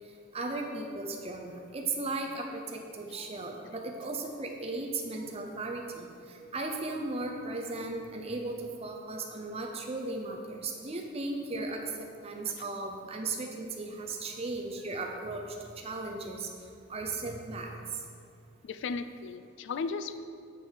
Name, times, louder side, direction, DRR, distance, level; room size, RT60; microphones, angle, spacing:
voice 1, 0.3-15.4 15.8-16.5 16.9-17.7, right 3 dB, 30° right, 1 dB, 0.6 m, -36 dB
voice 2, 18.6-20.2, left 4 dB, 60° left, 11 dB, 0.3 m, -36 dB
8.0 x 6.4 x 4.0 m, 2.4 s
head